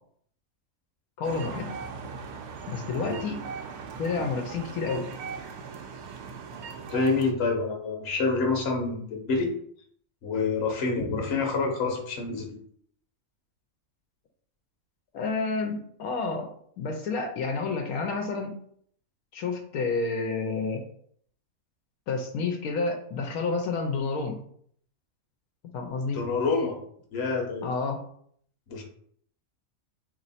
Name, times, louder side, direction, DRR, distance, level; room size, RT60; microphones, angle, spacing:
voice 1, 1.2-1.7 2.7-3.4 4.0-5.1 15.1-16.5 16.8-18.6 19.3-20.8 22.1-24.4 25.7-26.2 27.6-28.0, left 4 dB, 80° left, 3 dB, 1.1 m, -29 dB
sound 1, 1.2-7.3, right 5 dB, 85° right, 1.1 m, -39 dB
voice 2, 6.9-9.5 10.2-12.6 26.1-26.8 27.1-27.6 28.7-28.8, left 4 dB, 50° left, 2 dB, 1.1 m, -27 dB
3.0 x 2.9 x 4.1 m, 0.62 s
omnidirectional pair, 1.5 m